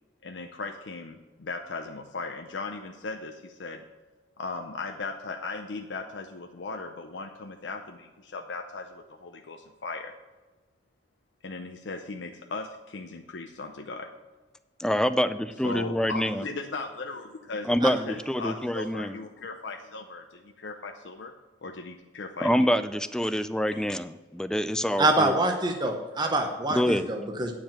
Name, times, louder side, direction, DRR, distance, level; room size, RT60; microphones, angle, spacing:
voice 1, 0.2-3.8 4.4-10.1 11.4-14.1 15.6-21.3 21.6-22.7 23.7-23.8, left 3 dB, 80° left, 4 dB, 0.6 m, -37 dB
voice 2, 14.8-16.4 17.7-19.2 22.4-25.3 26.7-27.1, equal, 5° left, 12 dB, 0.3 m, -26 dB
voice 3, 25.0-27.5, right 2 dB, 25° right, 3 dB, 0.8 m, -25 dB
9.2 x 5.0 x 7.3 m, 1.2 s
head